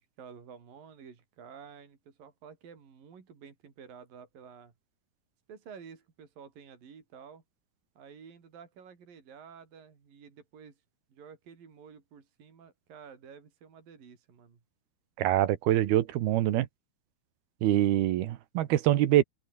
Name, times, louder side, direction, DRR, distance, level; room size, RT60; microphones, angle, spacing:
voice 1, 0.0-4.7 5.5-7.4 8.0-10.8 11.1-14.6, right 6 dB, 60° right, 5.7 m, -51 dB
voice 2, 15.2-16.7 17.6-19.2, right 13 dB, 80° right, 3.1 m, -25 dB
open air
omnidirectional pair, 4.5 m